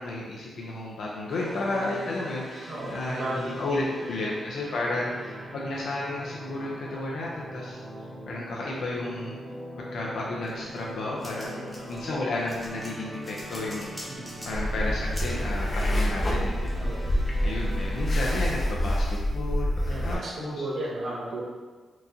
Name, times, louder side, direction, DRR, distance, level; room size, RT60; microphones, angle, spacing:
voice 1, 0.0-7.8 8.3-9.4 9.9-14.0 14.4-16.8 17.4-19.7 20.0-20.6, left 2 dB, 80° left, -4 dB, 0.5 m, -32 dB
sound 1, 1.3-18.4, equal, 35° right, 0.7 m, -41 dB
voice 2, 2.7-4.0 4.7-5.0 11.4-11.9 14.1-14.4 16.8-17.1 19.9-21.4, right 1 dB, 60° right, -6 dB, 0.9 m, -35 dB
sound 2, 10.4-17.5, equal, ahead, 0.9 m, -45 dB
sound 3, 14.5-20.2, equal, 30° left, 0.5 m, -27 dB
4.5 x 2.5 x 2.7 m, 1.4 s
wide cardioid pair, 155°, 0 cm